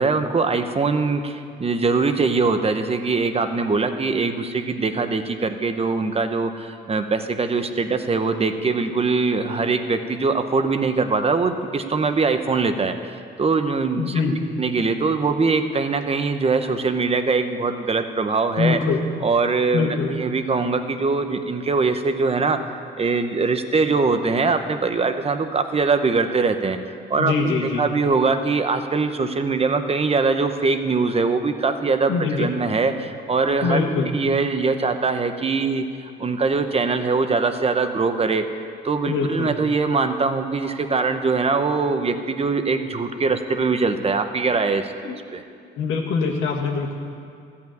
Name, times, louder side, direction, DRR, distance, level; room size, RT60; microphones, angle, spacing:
voice 1, 0.0-14.2 14.6-18.8 19.2-22.6 23.0-26.8 27.1-33.8 34.1-35.8 36.2-38.4 38.8-44.9 45.3-45.4, right 4 dB, 30° right, 8 dB, 0.8 m, -22 dB
voice 2, 13.9-14.4 18.6-19.0 19.7-20.1 27.2-27.8 32.1-32.5 33.6-34.1 39.1-39.5 40.6-40.7 45.0-45.2 45.8-46.9, left 5 dB, 80° left, 0 dB, 1.7 m, -23 dB
13.5 x 5.7 x 9.1 m, 2.3 s
cardioid pair, 90°, 20 cm